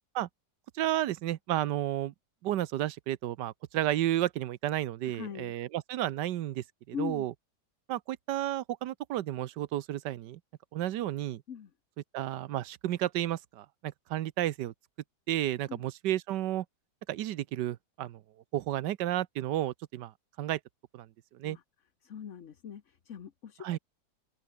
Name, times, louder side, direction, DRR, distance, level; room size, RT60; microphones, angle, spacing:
voice 1, 0.7-2.1 2.4-7.3 7.9-10.4 10.7-11.4 12.1-14.7 15.3-16.6 17.1-18.2 18.5-20.1 20.4-20.6 20.9-21.1 21.4-21.6 23.6-23.8, right 13 dB, 75° right, 1.4 m, -32 dB
voice 2, 5.0-5.5 6.9-7.3 11.5-11.7 15.7-15.8 21.4-21.6 22.0-23.8, left 8 dB, 45° left, 1.2 m, -41 dB
omnidirectional pair, 1.9 m